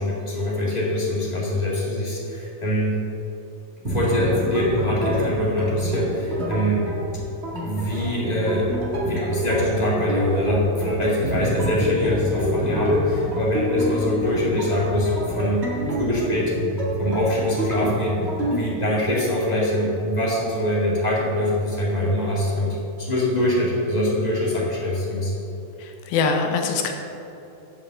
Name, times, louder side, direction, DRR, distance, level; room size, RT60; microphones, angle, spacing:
voice 1, 0.0-3.0 3.8-6.9 7.6-8.7 9.0-15.6 15.9-16.5 17.0-18.3 18.5-25.3, left 1 dB, 20° left, -6 dB, 1.3 m, -23 dB
sound 1, 3.8-18.6, equal, 90° right, 0.5 m, -27 dB
voice 2, 25.8-26.9, left 5 dB, 90° left, 4 dB, 2.7 m, -23 dB
10.5 x 5.4 x 7.4 m, 3.0 s
omnidirectional pair, 4.1 m